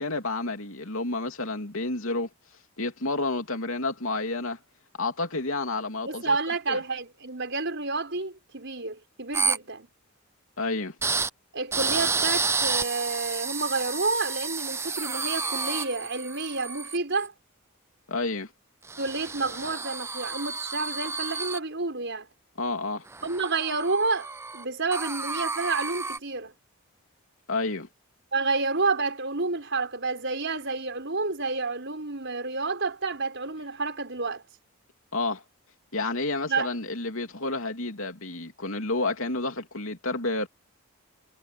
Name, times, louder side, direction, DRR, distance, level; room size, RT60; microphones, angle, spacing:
voice 1, 0.0-2.3 2.8-4.6 5.0-6.4 6.7-6.8 10.6-10.9 18.1-18.5 22.6-23.1 27.5-27.9 35.1-35.4 35.9-40.5, left 2 dB, 65° left, 3.1 m, -30 dB
voice 2, 6.0-9.9 11.5-17.3 19.0-22.3 23.2-26.5 28.3-34.4 36.5-36.7, right 3 dB, 55° right, 5.9 m, -29 dB
sound 1, 9.3-9.6 11.0-11.3 11.7-17.2 18.9-21.6 23.1-24.6 24.9-26.2, right 4 dB, 10° right, 0.6 m, -30 dB
head